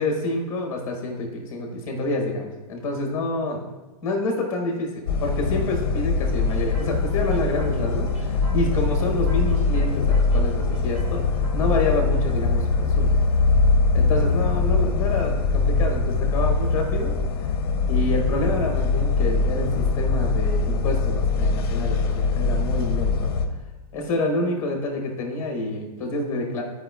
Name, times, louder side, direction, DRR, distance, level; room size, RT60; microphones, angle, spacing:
voice 1, 0.0-3.7 4.0-11.2 11.5-13.1 13.9-17.1 17.9-23.3 23.9-26.6, left 2 dB, 15° left, 2 dB, 1.0 m, -27 dB
sound 1, 5.1-23.5, left 3 dB, 40° left, 0.6 m, -22 dB
sound 2, 6.3-15.5, equal, 30° right, 1.5 m, -45 dB
10.5 x 4.8 x 2.2 m, 1.1 s
hypercardioid pair, 165°, 20 cm